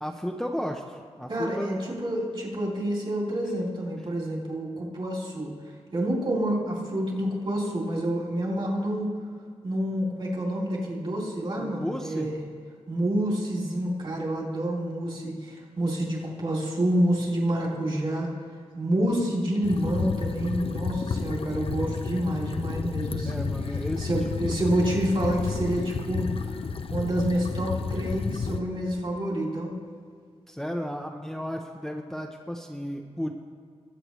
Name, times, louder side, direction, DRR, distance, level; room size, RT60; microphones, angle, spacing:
voice 1, 0.0-1.8 11.6-12.3 23.2-24.1 30.5-33.3, equal, 5° left, 2 dB, 0.6 m, -33 dB
voice 2, 1.3-5.5 5.9-9.1 9.6-12.4 12.9-18.3 18.7-23.5 24.0-26.3 26.9-29.7, right 1 dB, 50° right, -3 dB, 3.0 m, -28 dB
sound 1, 19.6-28.6, left 5 dB, 55° left, 0.5 m, -31 dB
21.0 x 7.9 x 3.1 m, 2.1 s
wide cardioid pair, 110°, 11 cm